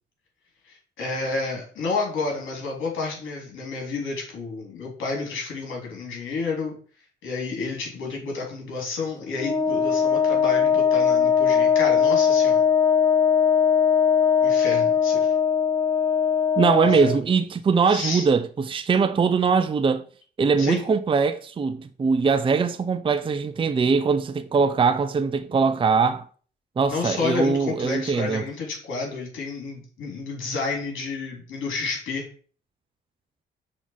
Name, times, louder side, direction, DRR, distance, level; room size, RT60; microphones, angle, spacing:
voice 1, 0.7-6.8 7.2-12.6 14.4-15.3 16.8-17.1 17.9-18.3 20.6-20.8 26.9-32.3, left 4 dB, 75° left, 3.3 m, -30 dB
Wind instrument woodwind instrument, 9.4-17.2, left 7 dB, 15° left, 0.8 m, -20 dB
voice 2, 16.6-20.1 20.4-26.3 26.8-28.4, right 5 dB, 25° right, 0.5 m, -21 dB
6.2 x 3.9 x 5.6 m
cardioid pair, 90°, 20 cm